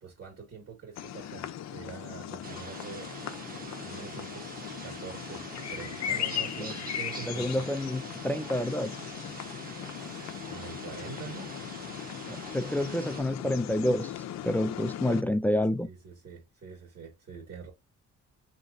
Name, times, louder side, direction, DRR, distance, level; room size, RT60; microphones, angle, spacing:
voice 1, 0.0-3.1 3.8-7.6 9.9-11.5 15.8-17.7, right 5 dB, 55° right, 1.7 m, -45 dB
sound 1, 1.0-15.2, left 10 dB, 60° left, 0.6 m, -38 dB
sound 2, 2.4-13.2, right 3 dB, 30° right, 1.0 m, -44 dB
voice 2, 7.3-8.9 12.3-14.1 14.4-15.9, left 1 dB, 5° left, 0.3 m, -28 dB
3.7 x 3.0 x 2.6 m
cardioid pair, 90°, 30 cm